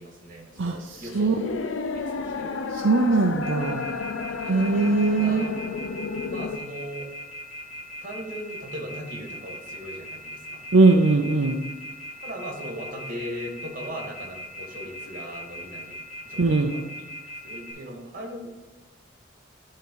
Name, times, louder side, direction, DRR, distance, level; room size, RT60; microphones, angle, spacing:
voice 1, 0.0-1.6 2.2-2.6 5.0-5.6 6.2-7.1 8.0-10.6 12.2-16.0 16.2-16.9 17.4-18.5, equal, 45° right, 0 dB, 2.2 m, -38 dB
sound 1, 0.6-6.6, left 4 dB, 75° left, 0.5 m, -32 dB
voice 2, 2.8-3.8 4.5-5.5 10.7-11.6 16.4-16.8, right 3 dB, 75° right, 2 dB, 0.6 m, -20 dB
Telephone, 3.4-17.7, equal, 35° left, 2.3 m, -39 dB
11.5 x 3.8 x 4.7 m, 1.1 s
head